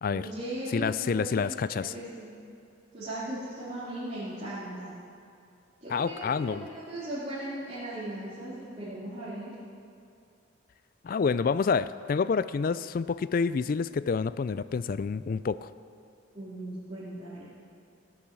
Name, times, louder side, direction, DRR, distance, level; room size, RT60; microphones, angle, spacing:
voice 1, 0.1-2.3 2.9-5.0 5.8-9.5 16.3-17.5, right 1 dB, 35° right, -12 dB, 2.9 m, -38 dB
voice 2, 0.7-1.9 5.9-6.7 11.0-15.7, left 5 dB, 45° left, 16 dB, 0.3 m, -28 dB
16.0 x 7.0 x 7.8 m, 2.5 s
head